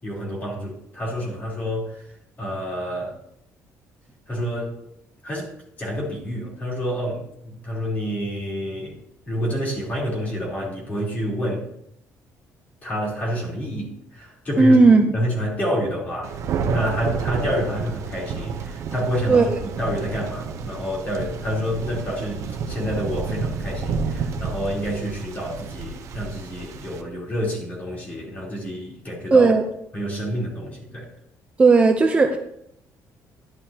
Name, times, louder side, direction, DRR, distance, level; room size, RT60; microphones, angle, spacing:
voice 1, 0.0-2.1 2.4-3.2 4.3-4.7 5.2-5.5 5.8-9.0 9.3-11.7 12.8-14.8 15.1-16.4 16.7-29.5 29.9-31.1, equal, 25° left, -4 dB, 3.7 m, -28 dB
voice 2, 14.6-15.1 19.3-19.6 29.3-29.6 31.6-32.4, right 3 dB, 20° right, 4 dB, 0.7 m, -15 dB
Thunder, 16.2-27.0, right 5 dB, 55° right, 0.9 m, -30 dB
12.0 x 10.5 x 2.9 m, 0.76 s
cardioid pair, 165°, 6 cm